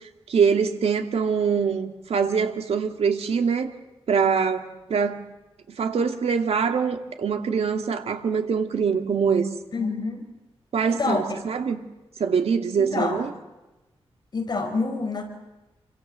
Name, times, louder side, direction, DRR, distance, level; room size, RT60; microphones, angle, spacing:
voice 1, 0.3-3.7 4.1-5.2 5.8-9.5 10.7-11.8 12.2-13.3, right 6 dB, 85° right, 5 dB, 2.5 m, -24 dB
voice 2, 9.7-10.2 10.9-11.4 12.7-13.3 14.3-15.2, left 3 dB, 45° left, 4 dB, 4.8 m, -27 dB
29.0 x 24.5 x 7.6 m, 1.0 s
wide cardioid pair, 150°, 10 cm